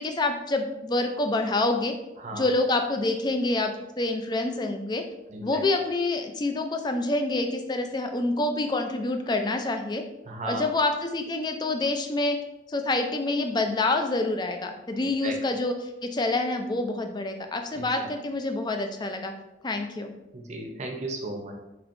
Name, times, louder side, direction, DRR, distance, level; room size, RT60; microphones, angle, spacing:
voice 1, 0.0-1.9 2.3-5.0 5.4-10.0 10.5-12.4 12.7-15.7 16.1-19.3 19.6-20.1, left 2 dB, 25° left, 5 dB, 0.4 m, -27 dB
voice 2, 2.2-2.5 5.3-5.6 10.2-10.7 15.2-15.3 17.7-18.1 20.3-21.5, right 2 dB, 40° right, 2 dB, 0.7 m, -35 dB
4.3 x 4.3 x 2.6 m, 0.94 s
head